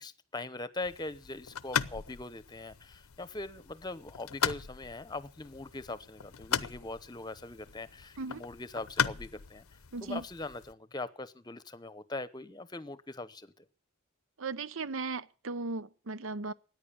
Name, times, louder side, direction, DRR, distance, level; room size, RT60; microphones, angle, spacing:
voice 1, 0.0-13.6, left 2 dB, 20° left, 0.9 m, -41 dB
sound 1, 0.8-10.7, left 8 dB, 80° left, 0.8 m, -38 dB
voice 2, 9.9-10.2 14.4-16.5, right 3 dB, 65° right, 0.7 m, -37 dB
14.0 x 9.8 x 8.5 m
head